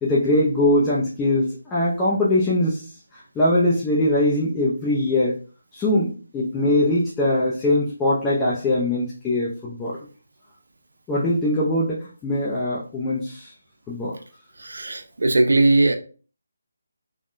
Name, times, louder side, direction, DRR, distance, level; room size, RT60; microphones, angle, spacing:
voice 1, 0.0-2.9 3.1-5.4 5.7-10.0 11.1-12.0 12.2-13.5 13.9-14.1, left 1 dB, 10° left, -7 dB, 0.5 m, -22 dB
voice 2, 14.6-16.0, right 2 dB, 75° right, 7 dB, 0.5 m, -19 dB
3.5 x 2.1 x 2.5 m, 0.38 s
figure-of-eight pair, 160°, 0 cm